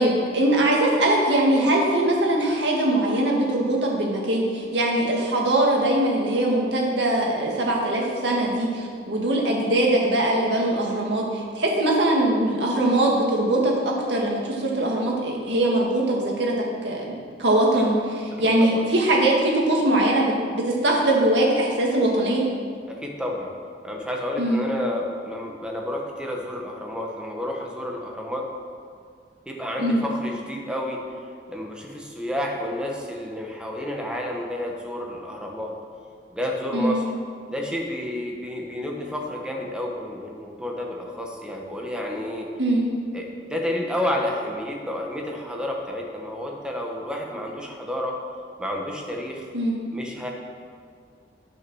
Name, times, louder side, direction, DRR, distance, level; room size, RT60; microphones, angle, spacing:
voice 1, 0.0-13.7 14.1-16.5 16.8-22.4 24.4-24.6 29.8-30.0 36.7-37.0 42.6-42.8 49.5-49.7, right 1 dB, 70° right, -2 dB, 1.9 m, -22 dB
voice 2, 22.9-23.5 23.8-28.5 29.5-31.0 31.5-35.7 36.3-37.0 37.5-42.5 43.1-48.2 48.6-49.4 49.9-50.3, left 1 dB, 5° right, -1 dB, 1.2 m, -30 dB
9.3 x 6.4 x 6.2 m, 2.1 s
head